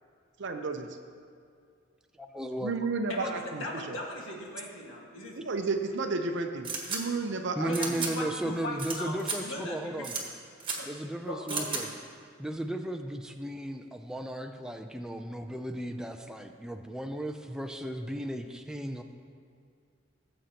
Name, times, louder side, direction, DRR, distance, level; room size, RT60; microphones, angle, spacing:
voice 1, 0.4-1.0 2.6-4.0 5.3-8.0, right 3 dB, 60° right, 5 dB, 0.6 m, -32 dB
voice 2, 2.2-2.7 7.6-10.1 10.9-11.9 12.4-19.0, right 1 dB, 5° right, 5 dB, 0.4 m, -35 dB
voice 3, 3.1-5.5 7.6-10.1 10.7-10.9 11.2-11.9, left 1 dB, 80° left, -2 dB, 1.7 m, -39 dB
sound 1, 6.6-7.0 7.7-8.1 8.8-8.9 9.2-9.4 10.0-10.2 10.6-10.8 11.5-11.8, right 5 dB, 25° right, 1.4 m, -33 dB
17.5 x 7.7 x 2.9 m, 2.3 s
head